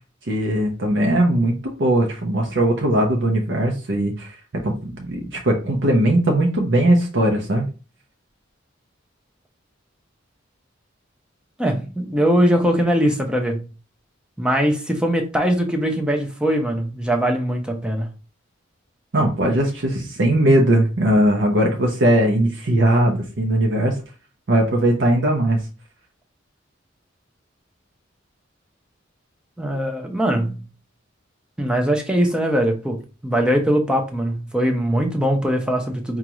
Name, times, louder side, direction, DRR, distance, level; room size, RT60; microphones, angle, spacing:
voice 1, 0.3-4.3 4.6-7.7 19.1-23.9 24.5-25.6, right 1 dB, 60° right, 0.6 m, -19 dB
voice 2, 11.6-13.7 14.4-18.1 29.6-30.7 31.6-36.2, equal, 5° right, 0.5 m, -21 dB
5.0 x 2.3 x 2.9 m
head